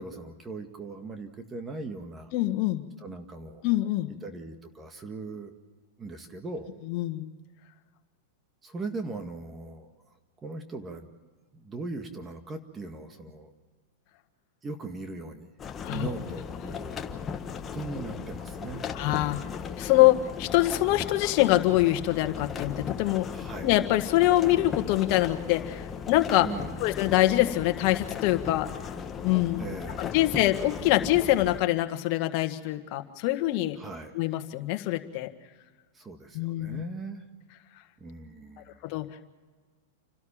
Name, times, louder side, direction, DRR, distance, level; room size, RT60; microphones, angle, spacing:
voice 1, 0.0-2.3 3.0-3.6 4.2-5.5 6.0-6.7 8.6-9.9 10.4-11.1 11.5-13.5 14.6-15.5 15.9-17.0 17.7-18.9 23.3-23.7 26.4-27.0 29.6-30.3 33.7-34.2 35.9-37.2 38.0-38.8, right 3 dB, 20° right, 7 dB, 1.9 m, -39 dB
voice 2, 2.3-2.8 3.6-4.1 6.9-7.3 15.8-16.1 18.9-19.5 19.8-23.3 23.6-26.5 26.8-28.7 29.2-29.6 30.0-33.8 34.1-35.3 36.3-36.8 38.8-39.3, left 16 dB, 50° left, 7 dB, 1.7 m, -24 dB
sound 1, 15.6-31.6, left 6 dB, 25° left, 1.3 m, -37 dB
29.0 x 12.5 x 8.8 m, 1.4 s
hypercardioid pair, 125°, 0 cm